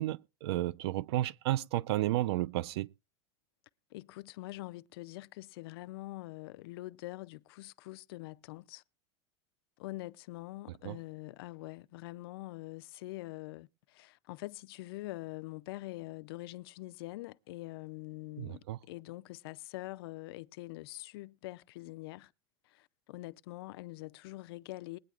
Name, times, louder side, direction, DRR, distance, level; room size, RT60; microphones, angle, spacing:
voice 1, 0.0-2.9 10.8-11.0 18.4-18.8, right 15 dB, 65° right, 0.5 m, -32 dB
voice 2, 3.9-8.8 9.8-22.3 22.6-25.0, left 19 dB, 60° left, 0.4 m, -44 dB
21.0 x 9.1 x 2.4 m
supercardioid pair, 175°, 14 cm